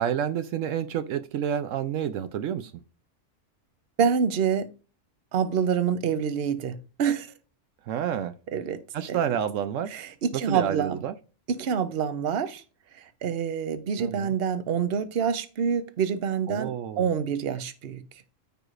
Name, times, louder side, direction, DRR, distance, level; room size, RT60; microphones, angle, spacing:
voice 1, 0.0-2.7 7.9-8.3 8.9-9.9 10.5-11.1 14.0-14.3 16.5-17.1, right 9 dB, 75° right, 0.9 m, -29 dB
voice 2, 4.0-4.7 5.3-7.3 8.5-8.8 9.1-9.2 9.9-11.0 11.5-12.6 12.9-18.0, right 7 dB, 55° right, 0.9 m, -27 dB
14.0 x 4.8 x 2.5 m
omnidirectional pair, 1.3 m